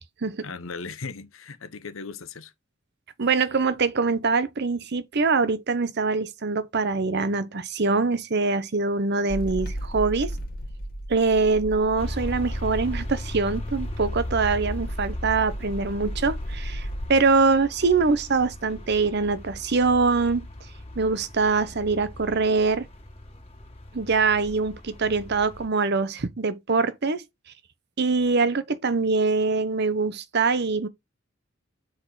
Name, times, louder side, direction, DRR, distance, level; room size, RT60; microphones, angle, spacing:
voice 1, 0.4-2.5, left 4 dB, 80° left, 0.9 m, -37 dB
voice 2, 3.2-10.3 11.1-20.4 21.0-22.8 23.9-27.2 28.0-30.9, right 4 dB, 55° right, 0.8 m, -23 dB
sound 1, 9.3-17.1, equal, 45° left, 1.4 m, -34 dB
sound 2, 12.0-25.7, left 1 dB, 30° left, 1.7 m, -38 dB
6.4 x 4.8 x 3.9 m
head